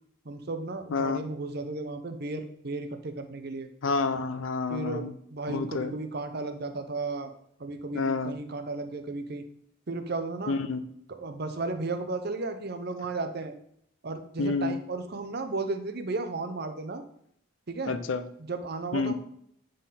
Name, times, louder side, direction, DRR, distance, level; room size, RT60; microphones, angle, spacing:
voice 1, 0.2-3.7 4.7-7.3 7.6-9.4 9.9-10.6 11.1-13.5 14.0-17.0 17.7-17.9 18.4-19.1, right 3 dB, 50° right, 7 dB, 0.7 m, -34 dB
voice 2, 3.8-5.1 5.5-5.9 7.9-8.3 10.5-10.8 14.4-14.8 17.9-18.2 18.9-19.1, left 4 dB, 70° left, 12 dB, 0.6 m, -28 dB
9.3 x 3.8 x 4.2 m, 0.70 s
head